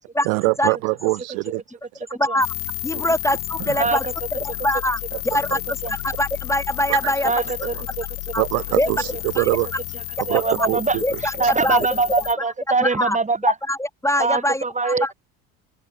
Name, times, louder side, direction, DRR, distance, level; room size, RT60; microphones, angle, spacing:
voice 1, 0.2-1.6 2.9-3.1 6.9-7.3 8.4-9.7 10.2-11.0, right 33 dB, 80° right, 3.8 m, -23 dB
sound 1, 2.4-12.3, left 26 dB, 80° left, 3.3 m, -32 dB
voice 2, 2.8-4.0 4.6-5.0 5.3-5.6 5.9-7.3 7.6-7.7 8.3-8.4 8.8-8.9 9.4-9.5 10.6-10.7 11.0-11.3 11.6-11.9 12.8-13.2 13.7-15.1, left 1 dB, 5° left, 2.3 m, -23 dB
voice 3, 3.8-4.1 5.8-6.0 7.2-8.0 9.9-13.5 14.2-15.1, right 4 dB, 20° right, 3.2 m, -23 dB
open air
hypercardioid pair, 75°, 40 cm